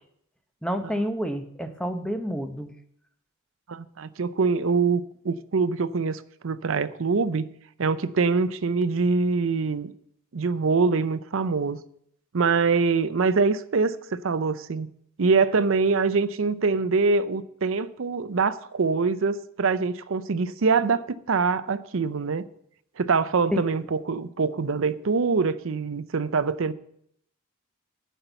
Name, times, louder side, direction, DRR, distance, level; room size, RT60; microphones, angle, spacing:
voice 1, 0.6-2.7 23.5-23.9, equal, 5° left, 0.7 m, -29 dB
voice 2, 3.7-7.5 7.8-9.9 10.3-11.8 12.3-14.9 15.2-22.4 23.0-26.7, right 4 dB, 70° right, 0.5 m, -24 dB
10.0 x 5.5 x 7.9 m
head